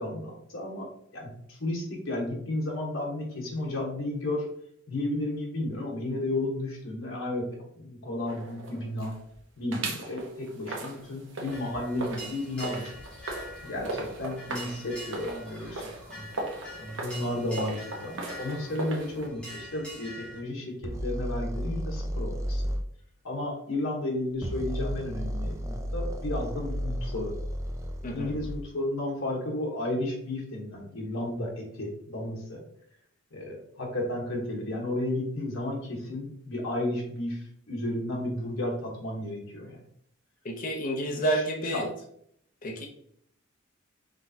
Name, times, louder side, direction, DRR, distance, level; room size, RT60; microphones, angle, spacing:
voice 1, 0.0-4.4 4.9-7.5 7.8-9.1 9.6-12.9 13.6-16.3 16.8-22.6 23.2-27.4 28.1-32.6 33.3-39.8 41.1-41.9, left 1 dB, 80° left, -2 dB, 1.2 m, -33 dB
sound 1, 8.3-9.4 9.7-19.3, right 2 dB, 65° right, 0.9 m, -39 dB
sound 2, 11.5-20.4, equal, 5° left, 1.3 m, -44 dB
sound 3, 20.8-22.8 24.3-28.7, equal, 15° right, 0.3 m, -33 dB
voice 2, 28.0-28.4 40.4-41.8 42.6-42.9, right 1 dB, 40° left, 2 dB, 0.5 m, -29 dB
5.0 x 3.3 x 2.7 m, 0.69 s
head